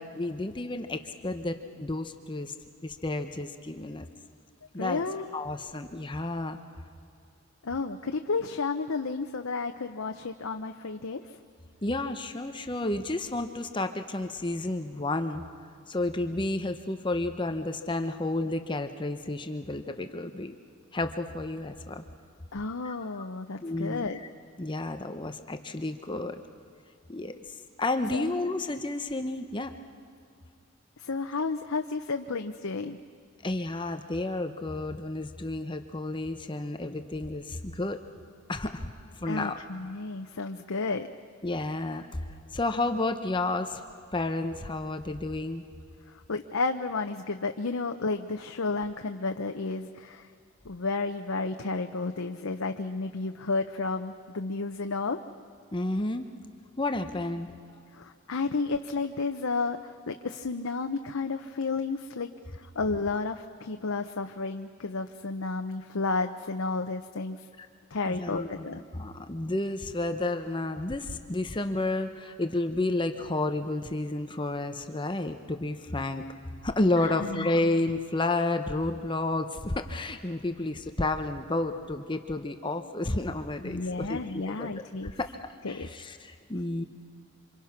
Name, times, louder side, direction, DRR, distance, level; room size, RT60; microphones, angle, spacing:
voice 1, 0.0-2.5 2.8-4.1 4.7-5.0 5.3-6.6 11.8-15.4 15.9-20.5 20.9-22.0 22.8-23.2 23.6-24.1 24.6-26.4 27.1-27.3 27.8-29.7 33.4-38.0 38.5-39.6 41.4-42.1 42.5-43.8 44.1-45.6 55.7-56.3 56.8-57.5 68.1-76.2 76.6-84.7 85.2-85.3 85.7-86.8, left 2 dB, 25° left, 7 dB, 0.9 m, -31 dB
voice 2, 4.8-5.3 7.6-11.4 22.5-24.2 28.1-28.3 31.0-33.0 39.3-41.1 46.1-50.3 50.6-55.2 57.9-67.5 67.9-68.8 77.0-77.5 83.6-85.2 85.6-85.9, left 3 dB, 85° left, 5 dB, 0.8 m, -32 dB
27.5 x 26.0 x 5.9 m, 2.4 s
head